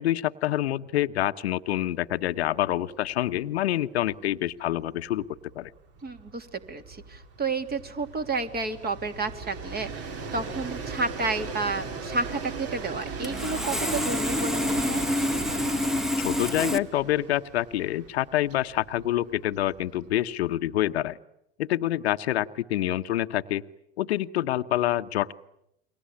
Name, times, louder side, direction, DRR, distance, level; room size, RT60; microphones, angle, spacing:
voice 1, 0.0-5.3 5.5-5.7 16.2-21.2 21.6-23.6 24.0-25.3, left 13 dB, 80° left, 11 dB, 1.0 m, -27 dB
Train, 2.1-2.3 2.6-2.7 3.0-20.4, right 5 dB, 45° right, 3.7 m, -39 dB
voice 2, 6.0-9.9 10.3-15.0, right 3 dB, 30° right, 7 dB, 3.2 m, -31 dB
Sawing, 12.8-12.9 13.2-16.8, left 1 dB, ahead, 1.2 m, -27 dB
29.5 x 23.0 x 8.6 m, 0.80 s
hypercardioid pair, 85°, 32 cm